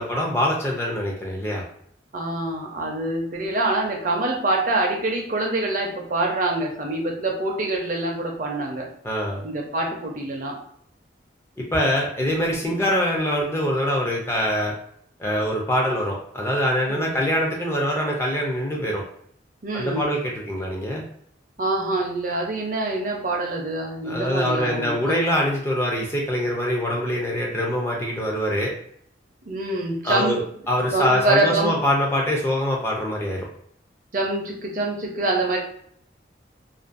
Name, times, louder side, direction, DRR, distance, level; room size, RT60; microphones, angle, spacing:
voice 1, 0.0-1.6 9.0-9.4 11.6-14.7 15.2-19.0 19.7-21.0 24.0-28.7 30.0-33.5, equal, 15° left, -1 dB, 0.4 m, -24 dB
voice 2, 2.1-8.9 9.4-10.6 12.4-12.8 16.9-17.1 19.6-20.1 21.6-25.2 29.5-30.4 30.8-31.7 34.1-35.6, right 2 dB, 45° right, 1 dB, 0.5 m, -25 dB
2.5 x 2.2 x 2.4 m, 0.66 s
head